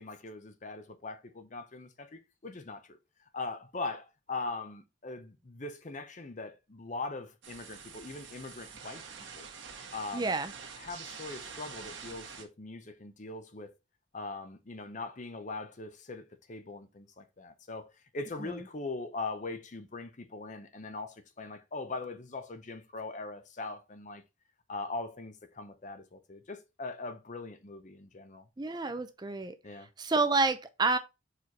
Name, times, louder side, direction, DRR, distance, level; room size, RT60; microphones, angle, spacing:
voice 1, 0.0-3.0 3.3-9.0 9.4-9.5 9.9-10.3 10.8-13.7 14.1-24.2 24.7-28.5 29.6-29.9, left 3 dB, 40° left, 0.7 m, -41 dB
sound 1, 7.4-12.4, right 6 dB, 65° right, 1.5 m, -46 dB
voice 2, 10.1-10.5 28.6-29.5 30.0-31.0, right 3 dB, 20° right, 0.5 m, -28 dB
4.9 x 4.4 x 4.5 m
head